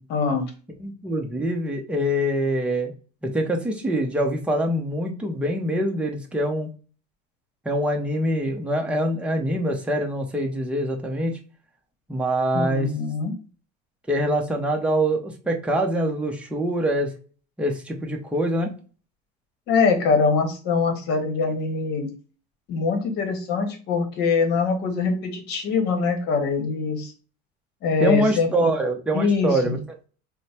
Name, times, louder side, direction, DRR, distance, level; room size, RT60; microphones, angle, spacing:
voice 1, 0.1-0.5 12.5-13.3 19.7-22.1 22.7-27.1 27.8-28.7 29.1-29.7, left 4 dB, 55° left, 5 dB, 1.0 m, -23 dB
voice 2, 0.8-2.9 3.2-6.7 7.6-11.4 12.1-12.9 14.1-17.1 17.6-18.7 28.0-29.8, right 1 dB, 5° right, 2 dB, 0.6 m, -24 dB
3.0 x 2.1 x 4.2 m, 0.38 s
cardioid pair, 130°, 20 cm